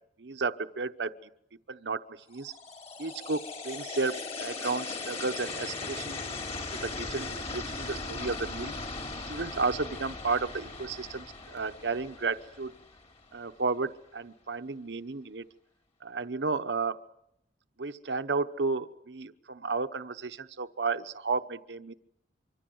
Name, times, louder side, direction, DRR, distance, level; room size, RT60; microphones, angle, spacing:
voice 1, 0.2-1.1 1.7-2.5 3.0-6.2 6.7-8.7 9.2-12.7 13.3-15.5 16.0-17.0 17.8-21.9, right 4 dB, 80° right, 9 dB, 0.9 m, -33 dB
sound 1, 2.4-13.4, left 3 dB, 35° left, 2.9 m, -39 dB
25.0 x 25.0 x 7.9 m, 0.79 s
head